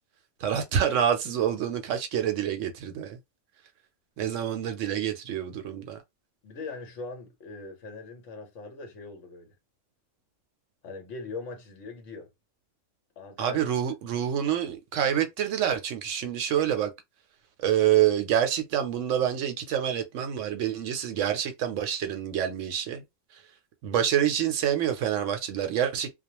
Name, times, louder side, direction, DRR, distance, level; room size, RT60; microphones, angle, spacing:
voice 1, 0.4-3.2 4.2-6.0 13.4-16.9 17.6-23.0 23.3-23.4 23.8-26.1, right 10 dB, 75° right, 0.9 m, -27 dB
voice 2, 6.4-9.5 10.8-12.3 13.2-13.6, left 3 dB, 70° left, 1.1 m, -41 dB
2.4 x 2.1 x 2.8 m
omnidirectional pair, 1.4 m